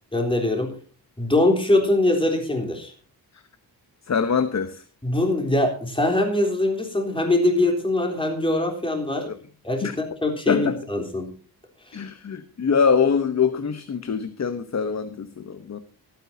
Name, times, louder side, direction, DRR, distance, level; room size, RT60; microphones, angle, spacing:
voice 1, 0.1-0.7 1.2-2.9 5.0-9.3 9.6-11.3 11.9-12.0, left 2 dB, 15° left, 2 dB, 3.7 m, -22 dB
voice 2, 4.1-4.8 9.2-9.4 9.8-9.9 10.5-10.8 11.9-15.8, left 6 dB, 45° left, 10 dB, 1.1 m, -23 dB
24.5 x 9.4 x 2.8 m, 0.38 s
wide cardioid pair, 140°, 40 cm